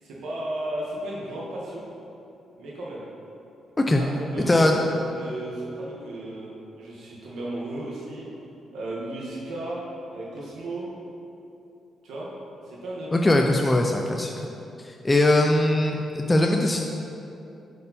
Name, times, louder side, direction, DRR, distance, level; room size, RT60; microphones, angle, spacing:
voice 1, 0.0-1.8 2.6-3.0 4.0-8.3 8.7-9.8 10.1-10.9 12.0-12.3 12.6-13.4 13.7-13.8, right 1 dB, 80° right, -6 dB, 1.6 m, -34 dB
voice 2, 13.1-14.5 14.8-16.8, left 1 dB, 15° left, 2 dB, 0.3 m, -21 dB
8.3 x 5.4 x 4.2 m, 2.8 s
wide cardioid pair, 170°, 0 cm